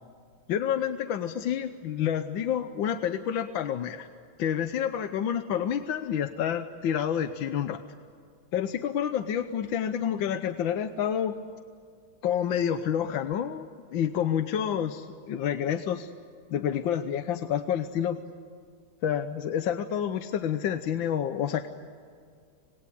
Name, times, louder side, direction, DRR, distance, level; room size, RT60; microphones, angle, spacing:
voice 1, 0.5-4.1 4.4-7.8 8.5-11.3 12.2-16.1 16.5-18.2 19.0-21.7, left 9 dB, 70° left, 9 dB, 1.5 m, -29 dB
25.5 x 20.5 x 9.9 m, 2.2 s
omnidirectional pair, 2.3 m